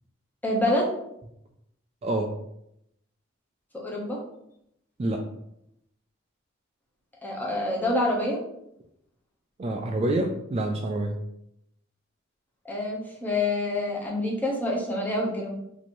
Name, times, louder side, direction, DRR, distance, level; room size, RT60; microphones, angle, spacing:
voice 1, 0.4-0.9 3.8-4.2 7.2-8.4 12.7-15.6, left 1 dB, 10° left, -3 dB, 0.8 m, -27 dB
voice 2, 2.0-2.3 5.0-5.2 9.6-11.2, right 1 dB, 30° right, 2 dB, 0.3 m, -27 dB
3.0 x 2.7 x 4.3 m, 0.78 s
head